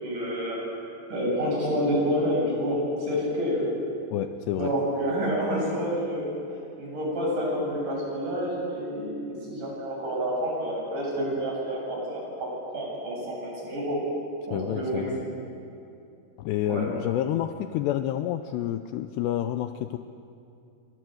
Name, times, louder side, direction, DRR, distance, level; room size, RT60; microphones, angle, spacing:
voice 1, 0.0-0.6 1.1-3.7 4.5-6.3 6.8-14.0 14.5-15.3 16.7-16.9, equal, 40° right, -3 dB, 8.9 m, -28 dB
voice 2, 4.1-4.7 14.5-15.2 16.4-20.0, left 12 dB, 90° left, 9 dB, 2.4 m, -29 dB
29.0 x 23.5 x 7.9 m, 2.7 s
omnidirectional pair, 5.8 m